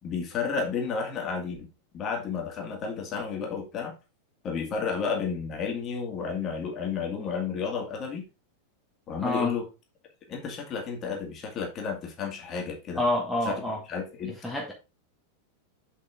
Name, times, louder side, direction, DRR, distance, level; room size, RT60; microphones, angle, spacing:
voice 1, 0.0-1.6 1.9-3.9 4.4-8.2 9.1-9.7 10.3-13.0 13.4-14.3, left 5 dB, 30° left, 2.2 m, -32 dB
voice 2, 9.2-9.5 12.9-13.8 14.4-14.7, left 1 dB, 5° left, 1.6 m, -27 dB
6.8 x 5.3 x 3.6 m
figure-of-eight pair, 90°, 0 cm